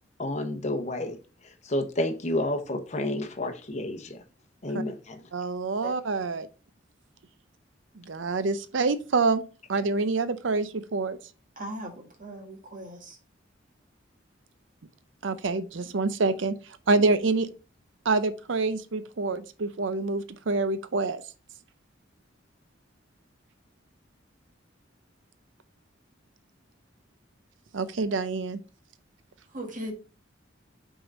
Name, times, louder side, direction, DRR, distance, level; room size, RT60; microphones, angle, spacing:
voice 1, 0.2-1.2 1.4-4.2 4.6-5.2 5.8-5.9, left 1 dB, 35° left, 0.9 m, -30 dB
voice 2, 5.3-6.5 8.0-9.4 9.7-11.2 15.2-16.5 16.9-17.5 18.0-21.2 27.7-28.6, right 3 dB, 85° right, 0.6 m, -26 dB
voice 3, 11.5-13.2 29.5-29.9, right 1 dB, 45° right, 1.6 m, -38 dB
5.7 x 3.8 x 5.3 m
head